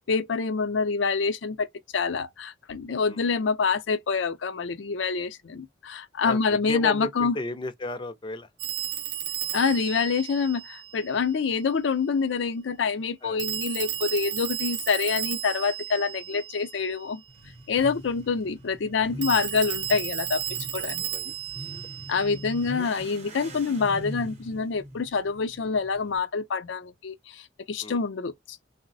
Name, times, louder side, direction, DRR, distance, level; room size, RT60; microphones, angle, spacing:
voice 1, 0.1-1.7 1.9-7.3 9.5-17.2 17.7-20.4 20.7-21.3 22.1-28.6, left 5 dB, 80° left, 0.5 m, -26 dB
voice 2, 3.1-3.4 6.2-8.5 13.2-13.4 17.8-17.9 20.7-21.4 27.8-28.0, left 2 dB, 25° left, 0.4 m, -35 dB
Telephone, 8.6-11.2 13.4-17.0 19.2-22.7, right 12 dB, 70° right, 0.5 m, -33 dB
Motorcycle / Accelerating revving vroom, 17.3-26.2, equal, 40° right, 0.7 m, -42 dB
3.8 x 2.0 x 2.6 m
head